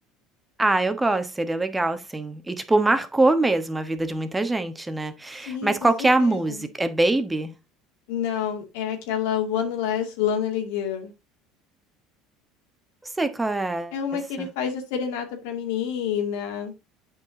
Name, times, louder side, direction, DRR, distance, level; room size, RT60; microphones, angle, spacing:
voice 1, 0.6-7.5 13.0-13.9 14.4-14.5, right 2 dB, 15° right, 1.3 m, -23 dB
voice 2, 5.5-5.9 6.2-6.6 8.1-11.1 13.9-16.7, left 8 dB, 80° left, 2.2 m, -28 dB
8.1 x 5.4 x 3.8 m
supercardioid pair, 90°, 0 cm